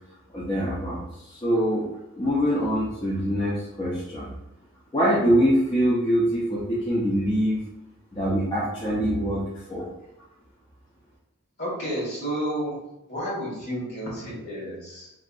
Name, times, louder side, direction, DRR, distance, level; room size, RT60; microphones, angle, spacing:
voice 1, 0.3-1.9 2.1-4.3 4.9-7.6 8.1-9.4 9.7-9.9, equal, 20° left, -7 dB, 0.4 m, -24 dB
voice 2, 11.6-12.8 13.1-15.1, equal, 45° left, -7 dB, 1.2 m, -31 dB
2.7 x 2.4 x 2.2 m, 0.91 s
head